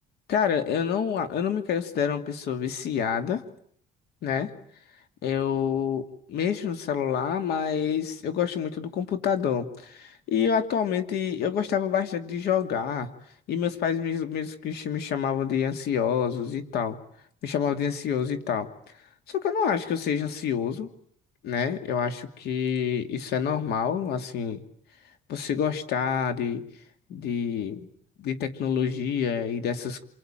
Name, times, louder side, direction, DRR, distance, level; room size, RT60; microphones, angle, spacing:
voice 1, 0.3-3.4 4.2-4.5 5.2-6.0 6.3-13.1 13.5-17.0 17.4-18.7 19.3-20.9 21.4-24.6 25.3-26.6 27.1-27.9 28.2-30.1, left 7 dB, 70° left, 9 dB, 2.8 m, -27 dB
27.5 x 24.0 x 9.1 m, 0.64 s
cardioid pair, 110°, 17 cm